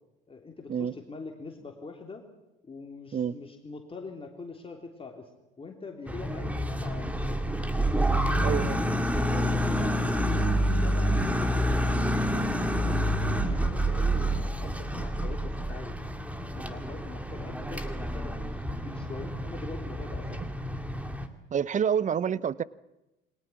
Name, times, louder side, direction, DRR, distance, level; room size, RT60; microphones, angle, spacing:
voice 1, 0.3-2.2 2.6-5.3 5.6-7.5 8.0-8.6 9.0-12.9 13.4-16.0 16.6-18.6 18.8-20.4, left 4 dB, 20° left, 1 dB, 3.3 m, -43 dB
sound 1, 6.1-21.3, equal, 5° right, 2.4 m, -28 dB
voice 2, 8.4-8.8 21.5-22.6, right 8 dB, 25° right, 20 dB, 0.8 m, -27 dB
29.0 x 22.0 x 6.0 m, 0.98 s
figure-of-eight pair, 65°, 29 cm